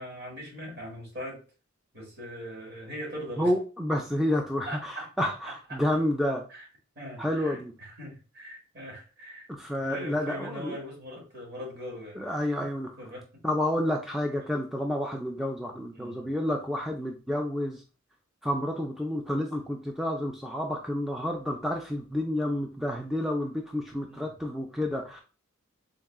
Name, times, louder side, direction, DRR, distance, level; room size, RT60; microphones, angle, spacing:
voice 1, 0.0-1.4 1.9-3.5 4.7-5.8 6.5-6.7 7.0-9.5 9.8-12.7 13.0-13.3 15.9-16.3 24.1-24.3, equal, 50° right, -1 dB, 1.6 m, -41 dB
voice 2, 3.4-6.4 7.2-7.7 9.6-10.7 12.1-12.9 13.4-17.8 18.4-25.2, left 1 dB, ahead, 1 dB, 0.3 m, -29 dB
3.7 x 2.3 x 3.4 m, 0.35 s
head